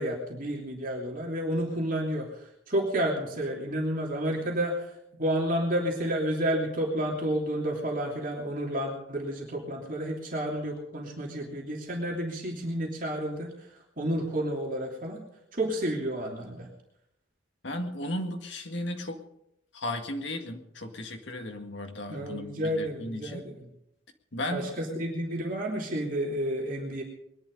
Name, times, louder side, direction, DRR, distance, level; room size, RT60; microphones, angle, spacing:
voice 1, 0.0-13.7 14.0-15.2 15.5-16.7 22.1-23.7 24.5-27.0, right 1 dB, 45° right, -1 dB, 3.0 m, -31 dB
voice 2, 17.6-19.2 19.7-23.4 24.3-25.0, left 1 dB, 65° left, 4 dB, 2.0 m, -35 dB
21.0 x 11.0 x 5.4 m, 0.77 s
head